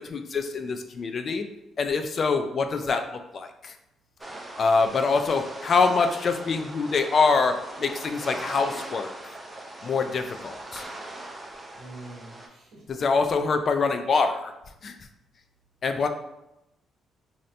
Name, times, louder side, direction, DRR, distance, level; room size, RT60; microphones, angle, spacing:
voice 1, 0.0-1.4 1.8-3.7 4.6-9.1 9.8-10.8 12.9-14.5 14.8-14.9 15.8-16.1, left 4 dB, 50° left, 7 dB, 0.3 m, -25 dB
sound 1, 4.2-12.5, right 1 dB, 20° right, 0.5 m, -40 dB
voice 2, 11.7-13.0, right 2 dB, 85° right, -4 dB, 1.0 m, -45 dB
2.7 x 2.6 x 3.2 m, 0.89 s
cardioid pair, 90°, 0 cm